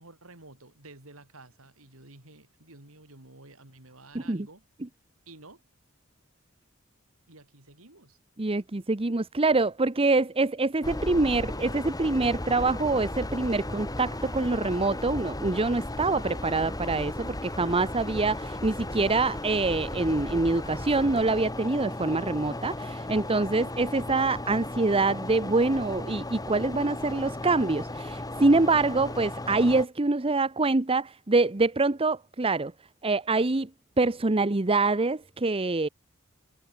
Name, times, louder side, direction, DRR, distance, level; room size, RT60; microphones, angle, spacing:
voice 1, 0.0-4.6 5.3-5.6 7.3-8.2, right 2 dB, 85° right, 5.3 m, -51 dB
voice 2, 8.4-32.7 33.0-33.7 34.0-35.9, right 3 dB, 25° right, 0.9 m, -25 dB
sound 1, 10.8-29.9, left 1 dB, 20° left, 2.9 m, -35 dB
head